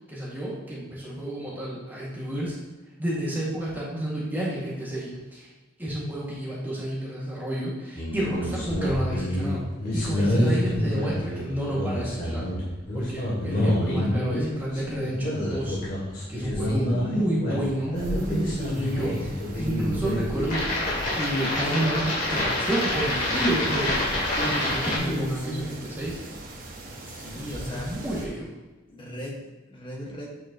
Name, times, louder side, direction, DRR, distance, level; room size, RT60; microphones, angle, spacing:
voice 1, 0.1-2.6 3.0-5.5 5.8-12.5 12.9-15.8 16.3-20.6 21.1-24.0 24.4-26.2 27.3-28.5, right 1 dB, 10° right, -6 dB, 1.9 m, -30 dB
sound 1, 8.0-25.0, left 1 dB, 45° left, 2.4 m, -27 dB
voice 2, 16.5-16.9 24.4-25.8 27.0-28.2 28.9-30.4, equal, 25° left, -2 dB, 1.5 m, -36 dB
sound 2, 17.9-28.3, right 1 dB, 45° right, 1.1 m, -39 dB
8.7 x 6.4 x 2.9 m, 1.2 s
head